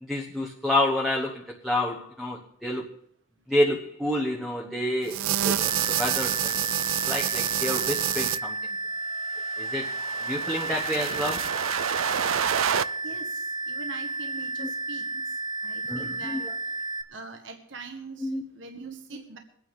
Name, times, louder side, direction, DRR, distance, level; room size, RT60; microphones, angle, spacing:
voice 1, 0.0-2.9 3.5-6.7 7.1-8.8 9.6-9.9 10.2-11.5 14.6-14.7 15.9-16.4 18.2-18.4, left 1 dB, ahead, -1 dB, 1.1 m, -29 dB
sound 1, 5.1-8.4 9.5-12.9, right 10 dB, 85° right, 0.4 m, -28 dB
sound 2, 5.6-17.0, right 2 dB, 20° right, 0.7 m, -32 dB
voice 2, 13.0-15.4 15.6-16.5 17.1-19.4, right 4 dB, 65° right, 4 dB, 1.3 m, -43 dB
23.0 x 9.2 x 3.7 m, 0.69 s
head